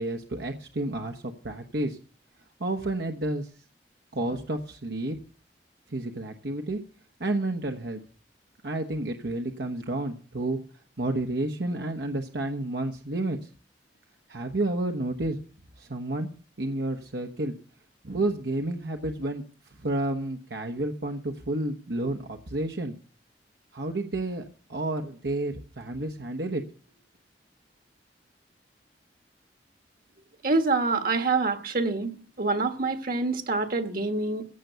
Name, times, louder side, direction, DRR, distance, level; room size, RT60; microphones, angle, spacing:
voice 1, 0.0-2.0 2.6-3.5 4.1-5.2 5.9-6.8 7.2-8.0 8.6-10.6 11.0-13.5 14.3-15.4 15.8-16.3 16.6-17.5 18.0-19.4 19.8-22.9 23.7-24.4 24.7-26.6, right 2 dB, 75° right, 1.2 m, -30 dB
voice 2, 30.4-32.1 32.4-34.4, right 3 dB, 55° right, 1.6 m, -26 dB
15.5 x 6.9 x 8.0 m
head